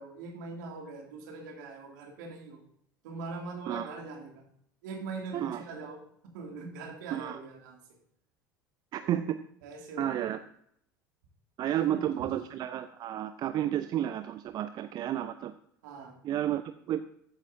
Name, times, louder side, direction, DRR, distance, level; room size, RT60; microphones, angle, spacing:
voice 1, 0.0-2.6 3.0-4.5 4.8-6.0 6.3-7.8 9.0-9.2 9.6-10.2 11.7-12.3 15.8-16.2, right 3 dB, 60° right, 1 dB, 2.4 m, -42 dB
voice 2, 5.3-5.6 7.1-7.4 8.9-9.4 10.0-10.4 11.6-15.5 16.2-17.0, right 11 dB, 35° right, 11 dB, 0.5 m, -31 dB
14.0 x 8.3 x 2.6 m, 0.68 s
figure-of-eight pair, 75°, 11 cm